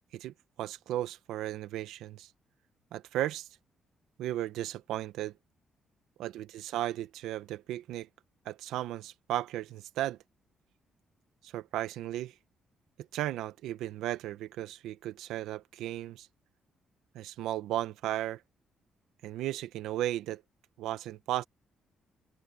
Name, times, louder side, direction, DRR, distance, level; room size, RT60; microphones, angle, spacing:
voice 1, 0.1-2.3 2.9-3.5 4.2-5.3 6.2-8.1 8.4-10.2 11.4-12.3 13.1-16.3 17.1-18.4 19.2-20.4 20.8-21.4, right 13 dB, 90° right, 0.8 m, -35 dB
open air
cardioid pair, 90°, 0 cm